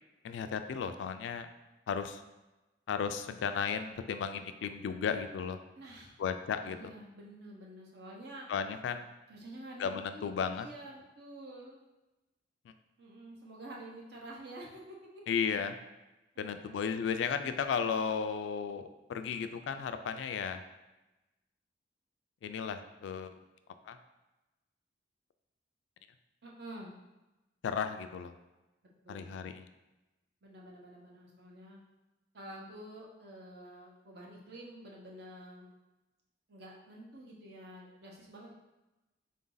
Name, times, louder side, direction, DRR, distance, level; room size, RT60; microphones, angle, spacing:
voice 1, 0.2-1.5 1.9-2.2 2.9-5.6 6.2-6.8 8.5-9.1 9.8-10.7 15.3-15.7 16.4-20.6 22.4-23.3 23.8-24.0 27.6-28.3 29.1-29.7, left 6 dB, 80° left, 9 dB, 0.3 m, -34 dB
voice 2, 5.7-6.1 6.6-8.5 9.3-11.8 13.0-15.2 16.3-16.8 26.4-26.9 29.0-29.4 30.4-31.8 32.3-35.7 36.5-38.5, right 1 dB, 60° right, -2 dB, 0.8 m, -49 dB
3.8 x 2.6 x 3.8 m, 1.1 s
head